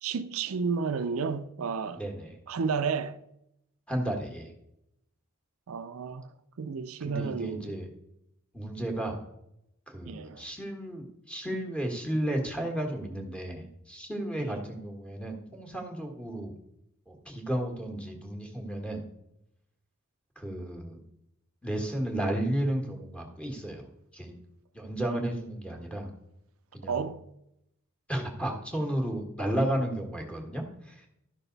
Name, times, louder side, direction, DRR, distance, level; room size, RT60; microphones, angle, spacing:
voice 1, 0.0-2.0 2.5-3.2 5.7-6.3 6.6-7.7 10.1-10.4 14.4-14.6 26.9-27.2, right 5 dB, 70° right, 0.5 m, -32 dB
voice 2, 1.9-2.4 3.9-4.5 7.0-7.9 8.5-9.2 9.9-16.5 17.1-19.0 20.3-21.0 21.6-23.9 24.1-24.3 24.7-26.1 26.7-27.0 28.1-31.1, right 1 dB, 5° left, 1.6 m, -33 dB
12.5 x 5.9 x 4.0 m
head